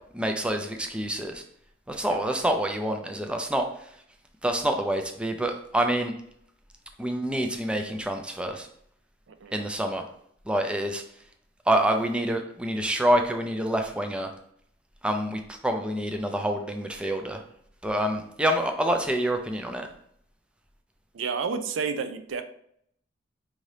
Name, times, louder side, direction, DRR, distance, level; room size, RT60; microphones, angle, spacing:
voice 1, 0.1-1.4 1.9-3.6 4.4-6.1 7.0-8.7 9.5-10.0 10.5-11.0 11.7-14.3 15.0-17.4 17.8-19.9, right 1 dB, 5° right, 4 dB, 0.3 m, -27 dB
voice 2, 21.1-22.4, right 5 dB, 90° right, 9 dB, 0.4 m, -30 dB
4.8 x 2.7 x 3.2 m, 0.69 s
head